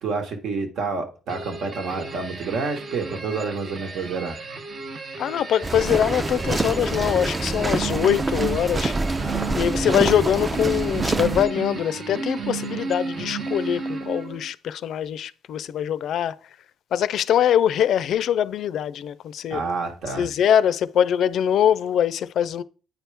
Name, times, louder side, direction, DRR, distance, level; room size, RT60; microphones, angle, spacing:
voice 1, 0.0-4.4 9.2-10.0 19.5-20.3, right 4 dB, 75° right, 1.4 m, -29 dB
sound 1, 1.3-14.5, right 4 dB, 50° right, 0.9 m, -33 dB
voice 2, 5.2-9.3 9.6-16.4 16.9-19.6 20.1-22.6, left 9 dB, 70° left, 0.4 m, -23 dB
sound 2, 5.6-11.4, right 2 dB, 25° right, 0.4 m, -26 dB
8.8 x 4.5 x 3.4 m
cardioid pair, 90°, 0 cm